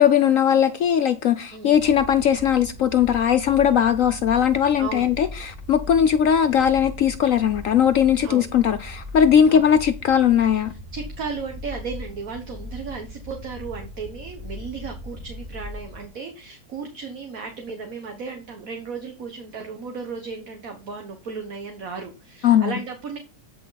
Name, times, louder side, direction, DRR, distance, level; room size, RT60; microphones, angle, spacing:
voice 1, 0.0-10.7 22.4-22.7, left 9 dB, 65° left, 0.8 m, -19 dB
sound 1, 1.7-16.1, left 1 dB, 35° right, 4.6 m, -39 dB
voice 2, 4.8-5.1 8.2-8.5 9.4-9.7 10.7-23.2, right 5 dB, 55° right, 1.6 m, -35 dB
13.0 x 5.9 x 4.0 m
omnidirectional pair, 1.9 m